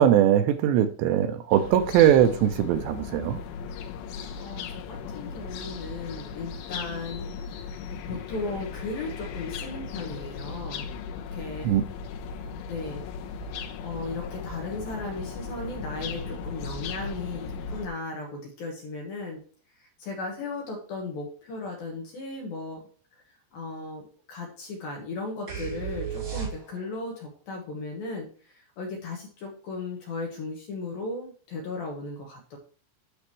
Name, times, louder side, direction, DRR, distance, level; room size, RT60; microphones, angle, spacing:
voice 1, 0.0-3.4 11.6-11.8, right 10 dB, 85° right, 8 dB, 2.9 m, -21 dB
sound 1, 1.5-17.9, left 5 dB, 90° left, 3.1 m, -37 dB
voice 2, 4.4-7.2 7.5-7.7 8.1-11.7 12.6-13.0 13.8-19.4 20.0-22.8 23.5-28.3 28.8-32.6, left 3 dB, 60° left, 0 dB, 3.0 m, -36 dB
sound 2, 25.5-27.0, right 8 dB, 35° right, 3.2 m, -34 dB
10.0 x 6.4 x 3.1 m, 0.42 s
omnidirectional pair, 5.1 m